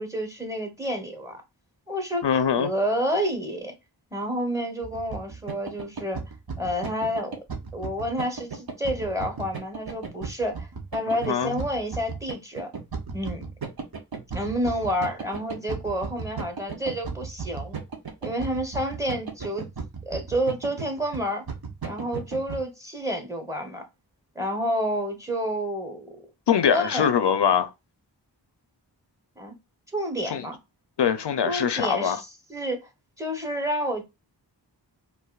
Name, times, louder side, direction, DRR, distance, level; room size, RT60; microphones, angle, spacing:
voice 1, 0.0-1.4 1.9-3.8 4.1-6.2 6.6-7.4 7.7-12.7 13.1-13.5 14.3-17.8 18.2-19.7 20.1-21.4 21.8-23.8 24.3-26.1 26.7-27.1 29.4-29.5 29.9-30.6 31.5-32.9 33.2-34.0, equal, 5° right, 1.1 m, -29 dB
voice 2, 2.2-2.7 11.3-11.6 26.5-27.7 30.3-30.5 31.0-32.2, left 8 dB, 75° left, 0.6 m, -22 dB
sound 1, 4.8-22.6, right 5 dB, 60° right, 0.9 m, -35 dB
4.6 x 2.6 x 2.3 m
wide cardioid pair, 60°, 42 cm